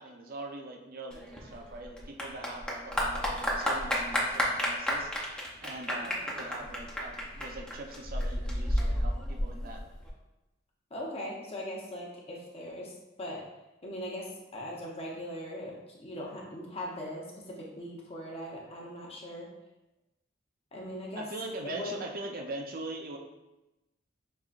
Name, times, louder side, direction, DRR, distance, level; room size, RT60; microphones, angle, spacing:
voice 1, 0.0-5.1 5.6-9.8 21.2-23.2, right 2 dB, 50° right, 3 dB, 0.6 m, -42 dB
Clapping / Applause, 1.1-10.1, equal, 5° left, 0.7 m, -31 dB
voice 2, 10.9-12.9 13.2-13.4 13.8-19.5 20.7-21.3 21.6-22.0, left 1 dB, 30° left, -3 dB, 0.8 m, -40 dB
5.4 x 3.4 x 2.5 m, 1.0 s
head